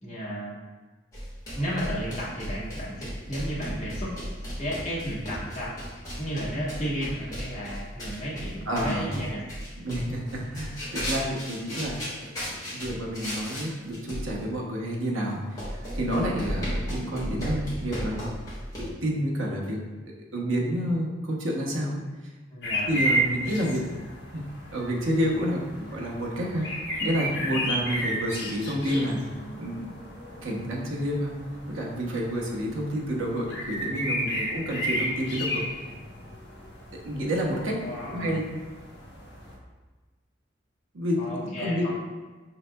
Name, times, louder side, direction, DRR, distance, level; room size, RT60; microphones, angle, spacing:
voice 1, 0.0-0.6 1.5-9.4 22.5-23.2 27.8-28.1 37.8-38.4 41.2-41.9, equal, 35° left, -8 dB, 1.2 m, -34 dB
sound 1, 1.1-13.7 13.9-14.4 15.2-15.3 15.6-18.9, equal, 20° left, 1.5 m, -35 dB
voice 2, 8.7-9.1 9.8-12.0 12.5-18.3 18.8-19.8 20.3-22.0 22.9-23.9 24.3-24.4 24.7-29.2 29.6-29.9 30.4-31.3 31.7-35.6 37.0-37.8 38.1-38.6 40.9-41.9, equal, 90° right, -2 dB, 0.9 m, -29 dB
sound 2, 22.6-39.6, right 1 dB, 60° left, 1.0 m, -33 dB
5.4 x 3.9 x 2.2 m, 1.3 s
head